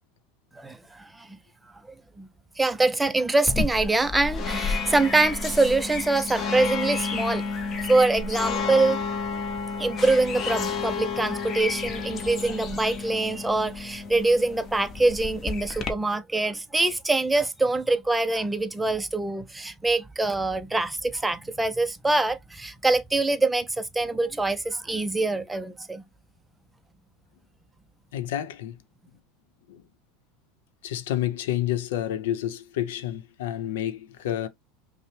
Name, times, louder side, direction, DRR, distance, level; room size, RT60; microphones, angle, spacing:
voice 1, 0.5-1.4 2.2-2.3 2.6-7.4 7.7-9.0 9.8-26.0, right 2 dB, 5° right, 0.4 m, -24 dB
sound 1, 3.5-15.9, left 4 dB, 25° left, 0.7 m, -31 dB
voice 2, 28.1-28.8 29.7-29.8 30.8-34.5, left 12 dB, 90° left, 0.7 m, -29 dB
5.4 x 2.1 x 3.2 m
supercardioid pair, 155°, 0 cm